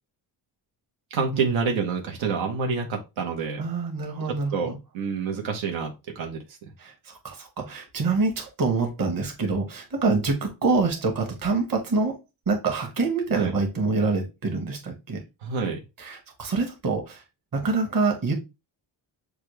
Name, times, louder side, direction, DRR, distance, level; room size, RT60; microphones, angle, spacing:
voice 1, 1.1-3.6 4.3-6.4 13.3-13.5 15.4-15.8, right 5 dB, 90° right, 2 dB, 1.1 m, -28 dB
voice 2, 3.6-4.8 6.8-12.2 12.5-15.2 16.0-17.2 17.5-18.3, right 3 dB, 45° right, 3 dB, 1.6 m, -26 dB
6.6 x 2.4 x 3.2 m, 0.25 s
cardioid pair, 120°, 46 cm